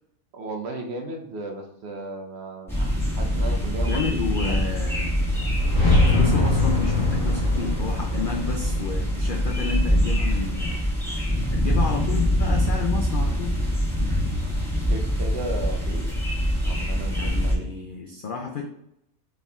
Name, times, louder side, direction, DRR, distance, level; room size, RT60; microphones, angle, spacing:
voice 1, 0.3-4.6 14.9-16.1 16.6-17.8, right 2 dB, 60° right, 3 dB, 0.8 m, -35 dB
sound 1, 2.7-17.5, equal, ahead, 1.3 m, -24 dB
voice 2, 3.9-5.2 6.1-10.8 11.5-13.5 17.1-18.6, left 5 dB, 80° left, 2 dB, 0.4 m, -31 dB
sound 2, 5.2-10.2, left 2 dB, 40° left, 1.9 m, -24 dB
4.2 x 3.6 x 3.5 m, 0.79 s
omnidirectional pair, 1.5 m